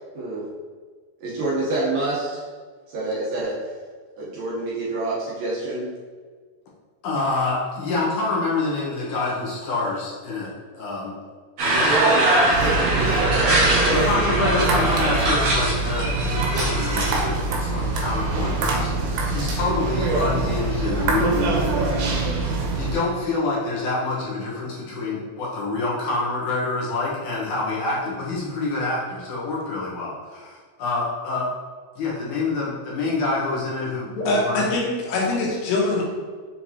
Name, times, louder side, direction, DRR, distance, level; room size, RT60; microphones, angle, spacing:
voice 1, 0.1-0.4 1.2-2.4 2.9-3.6 4.2-5.9 11.7-14.8, right 2 dB, 70° right, -6 dB, 2.5 m, -27 dB
voice 2, 7.0-11.1 11.6-12.0 13.9-31.5 32.0-34.7, left 3 dB, 65° left, -6 dB, 2.1 m, -27 dB
sound 1, 11.6-17.2, right 2 dB, 55° right, 2.2 m, -22 dB
sound 2, 12.5-23.0, right 3 dB, 85° right, 3.0 m, -24 dB
voice 3, 34.2-36.0, left 2 dB, 85° left, -3 dB, 3.4 m, -23 dB
7.2 x 4.5 x 2.9 m, 1.5 s
omnidirectional pair, 4.9 m